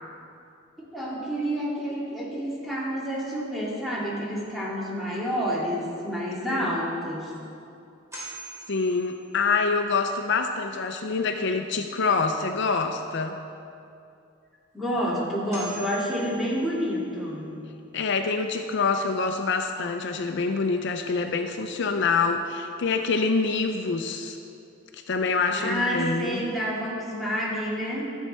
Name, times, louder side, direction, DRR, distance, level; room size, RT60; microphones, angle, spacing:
voice 1, 0.9-7.3 14.7-17.6 25.6-28.1, equal, ahead, -7 dB, 2.3 m, -29 dB
sound 1, 6.7-6.8 7.3-7.4 8.1-9.7 14.8-14.9 15.5-17.2, right 3 dB, 15° right, 2.8 m, -43 dB
voice 2, 8.7-13.3 17.9-24.4 24.9-26.4, left 4 dB, 65° left, 6 dB, 0.5 m, -26 dB
14.5 x 7.3 x 4.3 m, 2.6 s
head